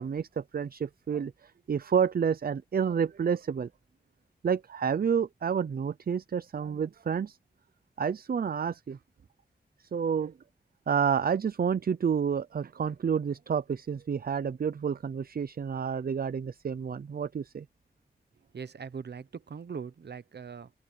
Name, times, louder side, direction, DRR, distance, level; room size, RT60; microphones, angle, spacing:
voice 1, 0.0-3.7 4.4-7.4 8.0-9.0 9.9-10.3 10.9-17.7, right 7 dB, 65° right, 0.5 m, -29 dB
voice 2, 18.5-20.7, right 6 dB, 90° right, 1.0 m, -41 dB
open air
wide cardioid pair, 90°, 17 cm